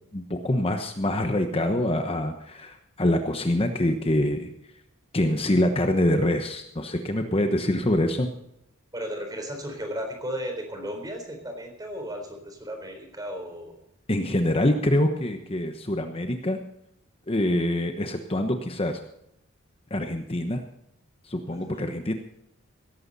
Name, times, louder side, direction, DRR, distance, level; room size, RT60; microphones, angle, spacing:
voice 1, 0.1-4.5 5.1-8.3 14.1-16.6 17.3-19.0 19.9-20.6 21.2-22.1, left 1 dB, 25° left, 6 dB, 1.0 m, -25 dB
voice 2, 8.9-13.7 21.5-21.9, equal, 20° right, 4 dB, 3.9 m, -35 dB
17.0 x 14.5 x 4.1 m, 0.81 s
head